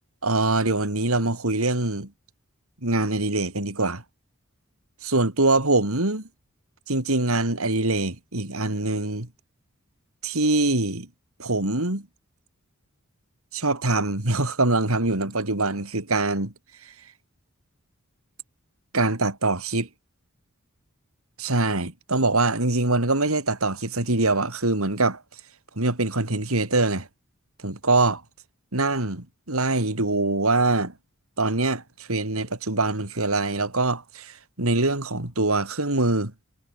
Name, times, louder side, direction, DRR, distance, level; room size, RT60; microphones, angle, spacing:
voice 1, 0.2-2.1 2.8-4.0 5.0-6.3 6.9-9.3 10.2-11.1 11.4-12.1 13.5-16.5 16.8-16.9 18.9-19.9 21.4-25.2 25.8-27.1 27.6-28.2 28.7-30.9 31.4-36.3, right 2 dB, 80° right, 3.9 m, -24 dB
head